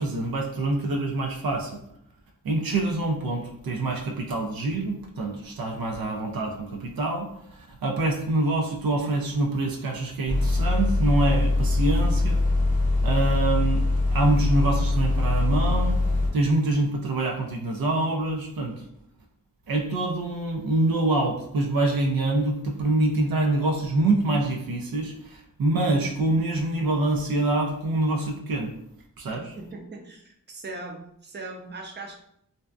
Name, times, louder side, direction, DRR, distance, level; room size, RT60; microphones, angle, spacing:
voice 1, 0.0-1.8 2.4-12.4 13.0-13.9 14.1-18.8 19.7-28.7 29.2-29.6, right 2 dB, 80° right, 2 dB, 0.5 m, -25 dB
sound 1, 10.3-16.3, left 2 dB, 20° left, 0.7 m, -23 dB
voice 2, 29.3-32.3, right 2 dB, 30° right, 1 dB, 0.6 m, -40 dB
2.6 x 2.1 x 2.3 m, 0.71 s
cardioid pair, 40°, 35 cm